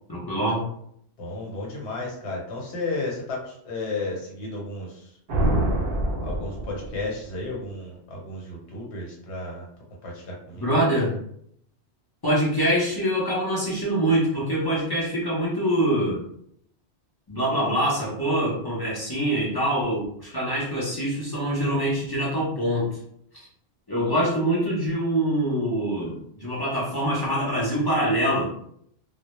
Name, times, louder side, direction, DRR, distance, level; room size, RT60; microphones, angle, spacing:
voice 1, 0.1-0.6 10.6-11.1 12.2-16.2 17.3-23.0 23.9-28.5, right 1 dB, 25° left, -6 dB, 0.6 m, -24 dB
voice 2, 1.2-5.1 6.2-9.6 10.0-10.9, left 2 dB, 75° left, -2 dB, 1.1 m, -33 dB
sound 1, 5.3-7.3, right 1 dB, 60° right, 0.7 m, -25 dB
2.1 x 2.0 x 2.9 m, 0.68 s
omnidirectional pair, 1.1 m